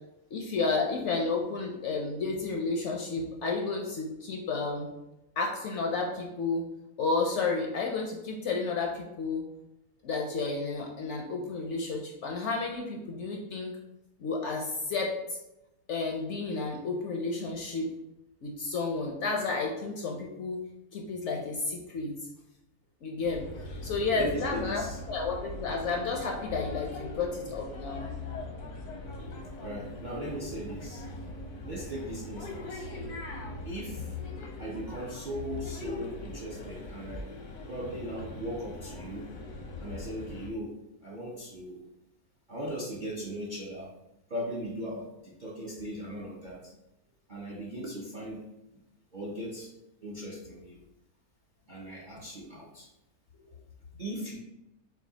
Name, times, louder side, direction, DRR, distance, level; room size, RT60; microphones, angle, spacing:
voice 1, 0.3-4.9 5.4-6.6 7.0-9.4 10.0-13.7 14.2-15.4 15.9-17.9 18.4-20.6 20.9-22.2 23.0-23.4 23.8-24.8 25.1-28.1 53.4-53.5, left 4 dB, 65° left, 0 dB, 0.7 m, -31 dB
sound 1, 23.2-40.5, left 2 dB, 85° left, 1.3 m, -41 dB
voice 2, 24.1-25.0 29.6-31.1 31.6-32.9 33.7-34.2 34.6-37.3 37.7-39.3 39.8-41.8 42.5-43.9 44.3-46.7 47.3-48.5 49.1-49.7 50.0-50.8 51.7-52.9 54.0-54.4, equal, 55° right, -4 dB, 0.5 m, -38 dB
6.1 x 2.3 x 2.7 m, 0.94 s
omnidirectional pair, 1.6 m